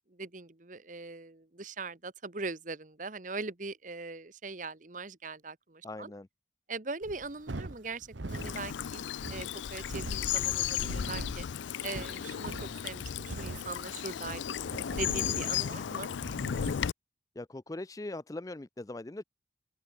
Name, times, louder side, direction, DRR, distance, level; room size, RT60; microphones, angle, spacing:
voice 1, 0.1-6.1 6.7-9.0 9.3-11.5 11.8-12.5 12.8-14.6 15.0-16.1, right 3 dB, 45° right, 1.3 m, -41 dB
voice 2, 5.8-6.3 17.4-19.2, left 2 dB, 20° left, 0.4 m, -40 dB
sound 1, 7.0-16.9, right 2 dB, 80° right, 1.1 m, -43 dB
Bird vocalization bird call bird song / Stream, 8.3-16.9, left 9 dB, 80° left, 0.4 m, -34 dB
head